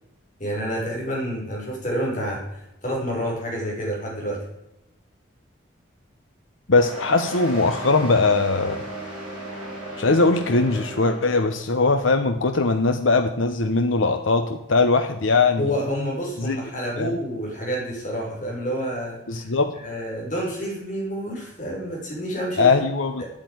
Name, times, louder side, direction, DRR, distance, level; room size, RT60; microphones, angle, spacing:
voice 1, 0.4-2.4 2.8-4.4 15.6-19.5 19.8-22.8 23.2-23.3, equal, 40° left, -2 dB, 6.0 m, -28 dB
voice 2, 6.7-8.8 10.0-15.7 16.4-16.6 17.0-17.1 19.3-19.7 22.6-23.2, left 3 dB, 85° left, 7 dB, 0.9 m, -20 dB
sound 1, 6.7-11.8, right 1 dB, 5° right, 6.1 m, -35 dB
9.7 x 8.9 x 9.4 m, 0.88 s
head